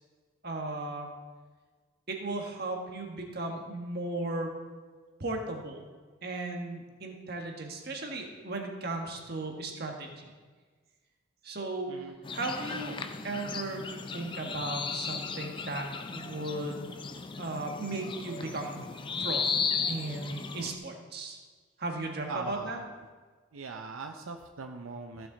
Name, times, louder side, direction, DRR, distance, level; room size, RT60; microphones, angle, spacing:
voice 1, 0.4-1.1 2.1-4.5 5.2-5.8 6.2-10.2 11.4-12.0 12.3-12.9 13.2-13.8 14.1-16.9 17.4-18.8 19.2-19.4 19.9-21.4 21.8-22.8, right 2 dB, 50° right, 2 dB, 1.5 m, -36 dB
sound 1, 12.2-20.7, left 5 dB, 25° left, 0.5 m, -35 dB
voice 2, 22.3-22.9 23.5-25.3, right 4 dB, 90° right, 5 dB, 0.6 m, -41 dB
15.0 x 6.6 x 3.9 m, 1.4 s
head